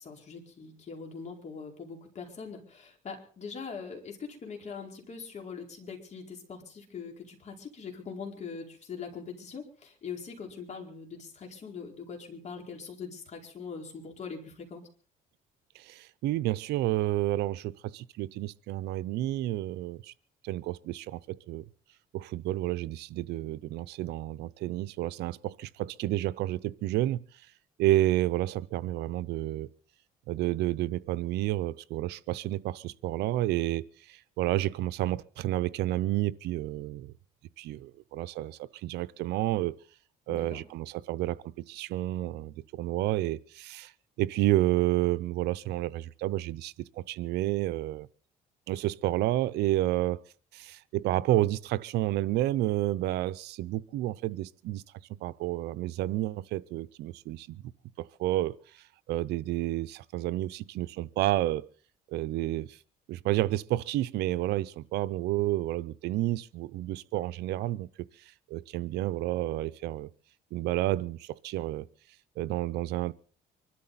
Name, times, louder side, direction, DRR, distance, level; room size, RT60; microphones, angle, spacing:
voice 1, 0.0-14.8 40.3-40.6, left 5 dB, 45° left, 4.7 m, -42 dB
voice 2, 15.7-20.1 20.4-21.6 22.1-27.3 27.8-29.7 30.3-37.1 37.6-39.7 40.3-43.9 44.2-48.1 48.7-50.2 50.5-54.8 55.2-57.6 58.0-58.6 59.1-61.7 62.1-62.8 63.1-67.9 68.5-70.1 70.5-71.9 72.4-73.1, right 15 dB, 80° right, 0.7 m, -30 dB
25.0 x 13.0 x 4.1 m
cardioid pair, 110°, 17 cm